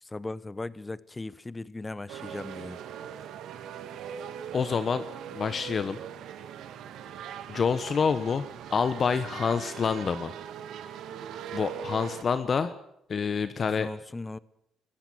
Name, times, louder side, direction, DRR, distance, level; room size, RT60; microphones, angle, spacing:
voice 1, 0.0-2.8 13.8-14.4, left 2 dB, 20° left, 0.9 m, -38 dB
sound 1, 2.1-12.2, right 8 dB, 80° right, 1.9 m, -41 dB
voice 2, 4.5-5.0 5.3-6.0 7.5-10.3 11.5-12.7 13.1-13.9, left 6 dB, 45° left, 1.2 m, -27 dB
20.5 x 15.0 x 9.3 m
cardioid pair, 90°, 0 cm